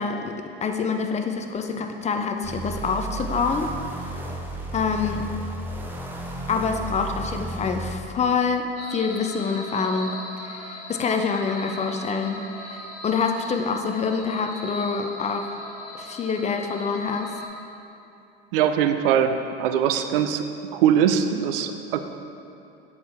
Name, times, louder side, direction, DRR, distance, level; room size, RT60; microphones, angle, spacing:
voice 1, 0.0-3.7 4.0-4.2 4.7-5.3 6.5-15.6 15.9-17.3, left 5 dB, 25° left, 5 dB, 0.5 m, -26 dB
sound 1, 2.4-8.0, right 2 dB, 5° right, 0.8 m, -33 dB
sound 2, 8.7-17.5, left 1 dB, 70° left, 1.2 m, -39 dB
voice 2, 18.5-20.4 20.7-22.1, right 8 dB, 70° right, 8 dB, 0.5 m, -22 dB
8.0 x 4.8 x 3.5 m, 2.8 s
hypercardioid pair, 75°, 29 cm